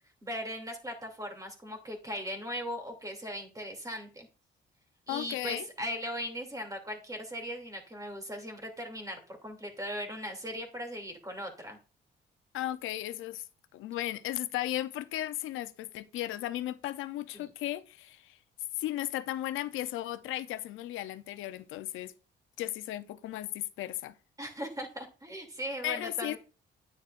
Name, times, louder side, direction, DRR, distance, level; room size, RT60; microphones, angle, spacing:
voice 1, 0.2-4.3 5.1-11.8 17.3-17.5 24.4-26.4, equal, 15° right, 2.7 m, -39 dB
voice 2, 5.1-5.7 12.5-13.5 13.7-18.4 18.8-22.1 22.6-24.1 25.8-26.4, left 14 dB, 90° left, 0.6 m, -35 dB
9.5 x 7.9 x 2.5 m
cardioid pair, 90°, 20 cm